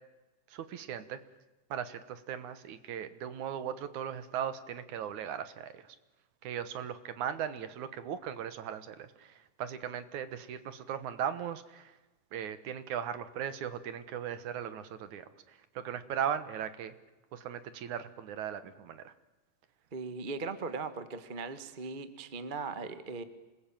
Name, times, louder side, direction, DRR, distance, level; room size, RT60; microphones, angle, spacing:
voice 1, 0.5-1.2 1.7-6.0 6.4-11.9 12.3-16.9 17.3-19.1, right 9 dB, 65° right, 13 dB, 2.5 m, -38 dB
voice 2, 19.9-23.2, right 4 dB, 35° right, 10 dB, 0.8 m, -39 dB
27.0 x 21.0 x 9.1 m, 1.1 s
omnidirectional pair, 4.0 m